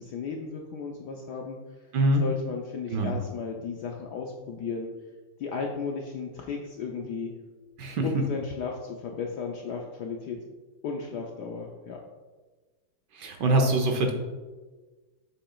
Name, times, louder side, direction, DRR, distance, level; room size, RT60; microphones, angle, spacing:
voice 1, 0.0-1.9 2.2-4.9 5.4-7.4 8.0-10.4 10.8-12.0, left 5 dB, 70° left, 1 dB, 1.0 m, -34 dB
voice 2, 1.9-2.2 2.9-3.1 7.8-8.0 13.2-14.1, right 1 dB, 65° right, 3 dB, 1.2 m, -23 dB
7.6 x 6.6 x 2.4 m, 1.3 s
omnidirectional pair, 2.4 m